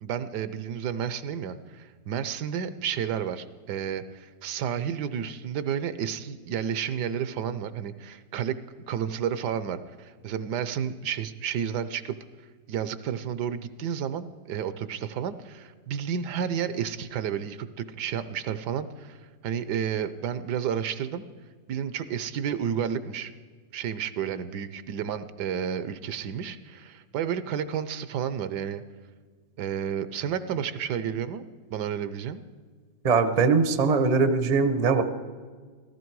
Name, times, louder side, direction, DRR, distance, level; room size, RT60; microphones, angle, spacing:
voice 1, 0.0-8.6 8.9-12.2 12.7-21.3 21.7-23.3 23.7-28.8 29.6-31.4 31.7-32.4, right 8 dB, 75° right, 13 dB, 1.2 m, -31 dB
voice 2, 33.0-35.0, right 4 dB, 40° right, 10 dB, 0.6 m, -21 dB
15.0 x 14.0 x 4.6 m, 1.5 s
omnidirectional pair, 1.9 m